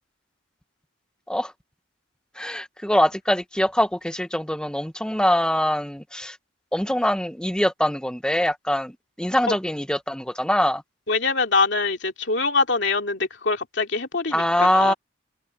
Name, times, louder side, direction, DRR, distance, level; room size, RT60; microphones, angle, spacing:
voice 1, 2.4-6.4 6.7-8.9 9.2-10.8 14.3-14.9, left 1 dB, 5° left, 1.2 m, -23 dB
voice 2, 11.1-14.9, left 3 dB, 60° left, 2.7 m, -24 dB
head